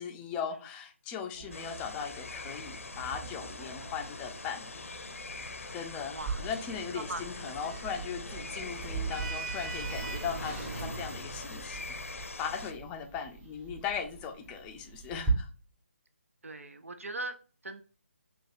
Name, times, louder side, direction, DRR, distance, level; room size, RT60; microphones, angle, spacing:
voice 1, 0.0-4.8 5.7-15.5, left 7 dB, 15° left, 4 dB, 0.4 m, -39 dB
sound 1, 1.3-9.3, right 4 dB, 55° right, 1.4 m, -49 dB
sound 2, 1.5-12.7, left 3 dB, 75° left, 0.6 m, -43 dB
Sliding door, 6.2-15.3, right 4 dB, 20° right, 1.1 m, -39 dB
voice 2, 16.4-17.8, right 2 dB, 85° right, 9 dB, 0.5 m, -40 dB
6.0 x 2.3 x 2.5 m, 0.38 s
figure-of-eight pair, 150°, 7 cm